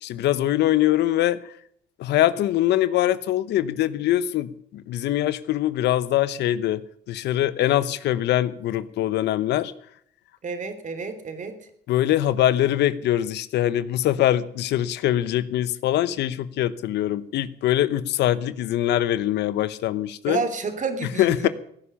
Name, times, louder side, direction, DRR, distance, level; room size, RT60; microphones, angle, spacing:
voice 1, 0.0-1.5 2.0-6.8 7.1-9.7 11.9-20.4 21.2-21.5, left 13 dB, 85° left, 16 dB, 0.9 m, -23 dB
voice 2, 10.4-11.6 20.3-21.5, right 4 dB, 45° right, 8 dB, 3.1 m, -30 dB
17.0 x 10.0 x 7.0 m, 0.67 s
cardioid pair, 85°, 17 cm